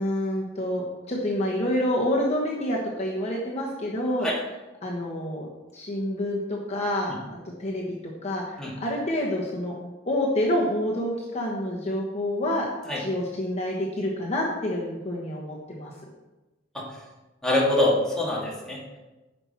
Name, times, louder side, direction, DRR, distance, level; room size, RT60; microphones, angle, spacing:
voice 1, 0.0-4.3 4.8-5.5 5.7-7.1 7.6-7.8 8.2-9.7 10.0-12.7 13.0-15.9, left 1 dB, 35° left, -3 dB, 1.2 m, -27 dB
voice 2, 17.4-19.0, left 1 dB, 5° left, -5 dB, 2.0 m, -25 dB
9.9 x 6.0 x 4.4 m, 1.1 s
head